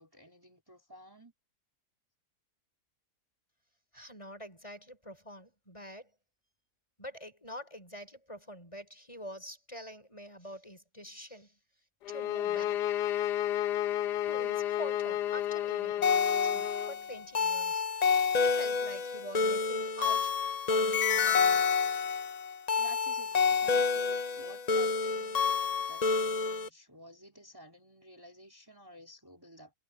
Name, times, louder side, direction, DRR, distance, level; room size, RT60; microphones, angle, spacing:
voice 1, 0.0-1.3 22.8-29.7, equal, 15° right, 4.0 m, -53 dB
voice 2, 3.9-6.1 7.0-11.6 12.1-12.8 14.1-17.9 18.4-20.4 20.7-21.7, equal, 20° left, 5.5 m, -46 dB
sound 1, 12.1-17.0, left 11 dB, 90° left, 1.2 m, -32 dB
sound 2, 16.0-26.7, left 5 dB, 45° left, 0.5 m, -28 dB
omnidirectional pair, 1.7 m